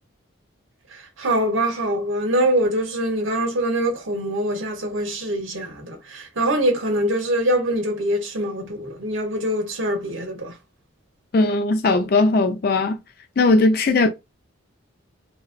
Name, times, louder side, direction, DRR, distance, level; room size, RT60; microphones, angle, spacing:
voice 1, 0.9-10.6 13.5-13.6, right 1 dB, 70° right, 0.9 m, -24 dB
voice 2, 11.3-13.0 13.4-14.1, left 3 dB, 45° left, 0.4 m, -18 dB
2.8 x 2.0 x 2.5 m
head